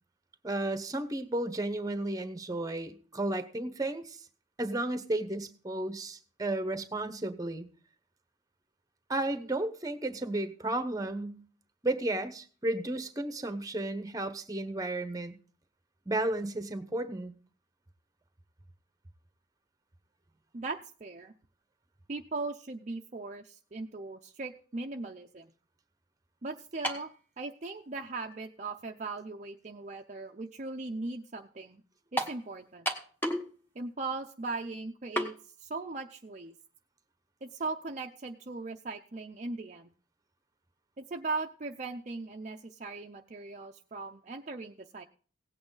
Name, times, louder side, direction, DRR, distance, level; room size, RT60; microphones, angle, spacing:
voice 1, 0.4-4.3 4.6-7.7 9.1-11.4 11.8-15.3 16.1-17.3, right 1 dB, 20° right, 10 dB, 0.9 m, -33 dB
voice 2, 20.5-21.3 22.1-25.5 26.4-27.1 27.4-31.8 32.1-32.9 33.8-36.5 37.4-39.9 41.0-45.0, right 3 dB, 40° right, 3 dB, 0.6 m, -39 dB
sound 1, 26.8-27.1 28.0-28.1 32.2-32.4 32.9-33.5 33.8-33.9 35.2-35.3, equal, 10° left, 1.2 m, -31 dB
17.0 x 8.7 x 3.9 m, 0.43 s
head